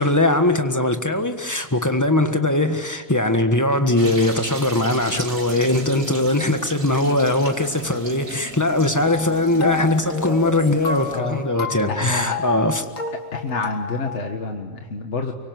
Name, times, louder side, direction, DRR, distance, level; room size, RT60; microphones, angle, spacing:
voice 1, 0.0-12.8, left 2 dB, 15° left, 6 dB, 1.5 m, -20 dB
sound 1, 4.0-11.2, right 3 dB, 90° right, 2.7 m, -37 dB
sound 2, 9.1-14.2, left 5 dB, 75° left, 2.3 m, -31 dB
voice 2, 11.1-11.4 11.9-12.4 13.3-15.3, left 4 dB, 60° left, 4 dB, 1.8 m, -28 dB
24.5 x 24.5 x 9.5 m, 1.5 s
omnidirectional pair, 1.4 m